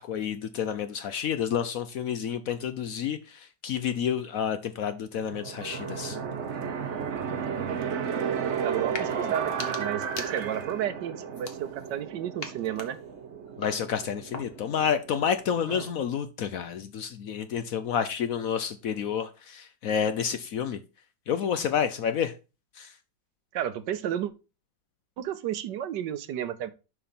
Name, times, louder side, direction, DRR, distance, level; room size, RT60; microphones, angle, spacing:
voice 1, 0.0-6.2 13.6-20.8 21.3-22.3 22.8-22.9, left 8 dB, 65° left, 0.9 m, -29 dB
sound 1, 5.2-15.9, right 7 dB, 50° right, 1.0 m, -34 dB
voice 2, 7.5-8.0 8.6-13.0 23.5-24.3 25.2-26.7, right 10 dB, 75° right, 1.4 m, -32 dB
sound 2, 8.8-9.1 9.4-10.8 11.3-12.0 12.4-14.8, left 4 dB, 40° left, 1.2 m, -42 dB
6.6 x 5.6 x 4.2 m
omnidirectional pair, 1.9 m